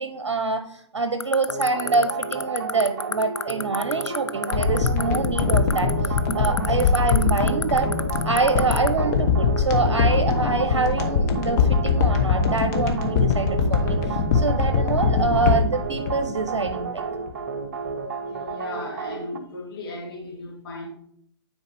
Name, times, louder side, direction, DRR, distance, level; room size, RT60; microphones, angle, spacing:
voice 1, 0.0-7.9 8.2-17.0, right 4 dB, 75° right, 7 dB, 0.8 m, -25 dB
sound 1, 1.2-8.9, left 6 dB, 80° left, 0.5 m, -26 dB
sound 2, 1.5-19.4, right 5 dB, 45° right, 0.8 m, -32 dB
sound 3, 4.5-17.0 17.3-17.4, left 5 dB, 40° left, 1.0 m, -22 dB
voice 2, 18.3-20.9, left 2 dB, 55° left, -2 dB, 2.1 m, -37 dB
9.7 x 4.5 x 3.4 m, 0.67 s
figure-of-eight pair, 130°, 15 cm